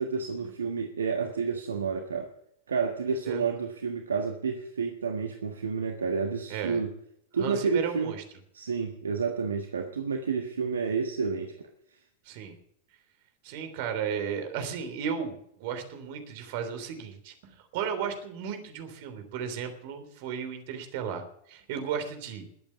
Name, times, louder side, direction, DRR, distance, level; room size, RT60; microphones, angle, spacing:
voice 1, 0.0-2.3 2.7-6.9 7.3-8.1 8.5-11.7, right 5 dB, 70° right, 4 dB, 1.5 m, -30 dB
voice 2, 6.5-6.8 7.4-8.2 12.2-12.6 13.4-22.5, right 7 dB, 50° right, 8 dB, 3.3 m, -34 dB
21.0 x 8.7 x 7.2 m, 0.74 s
figure-of-eight pair, 90°, 0 cm